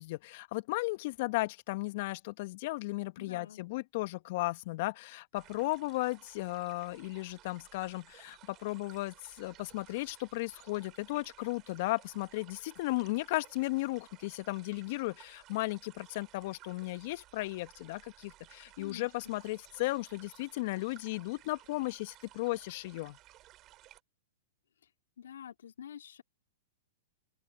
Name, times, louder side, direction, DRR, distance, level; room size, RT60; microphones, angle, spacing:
voice 1, 0.0-23.2, left 21 dB, 55° left, 1.5 m, -35 dB
voice 2, 3.2-3.6 18.8-19.4 25.2-26.2, left 9 dB, 70° left, 2.9 m, -47 dB
sound 1, 5.3-24.0, right 15 dB, 35° right, 5.6 m, -58 dB
open air
hypercardioid pair, 110°, 0 cm